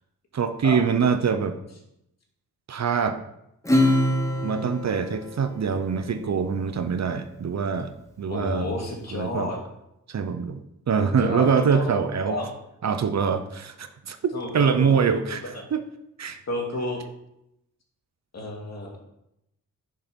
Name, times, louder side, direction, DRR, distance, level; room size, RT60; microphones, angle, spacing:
voice 1, 0.3-1.6 2.7-3.2 4.4-7.9 8.2-8.7 9.1-9.5 10.1-10.6 10.9-12.4 12.8-14.2 14.5-15.8 16.2-16.4, right 6 dB, 50° right, 9 dB, 0.8 m, -24 dB
Acoustic guitar / Strum, 3.6-6.6, left 1 dB, 10° left, 1.6 m, -25 dB
voice 2, 8.3-9.6 11.0-11.9 12.3-12.5 14.3-15.6 16.5-17.0 18.3-19.0, left 2 dB, 50° left, 0 dB, 2.5 m, -31 dB
10.5 x 6.4 x 5.4 m, 0.83 s
wide cardioid pair, 125°, 34 cm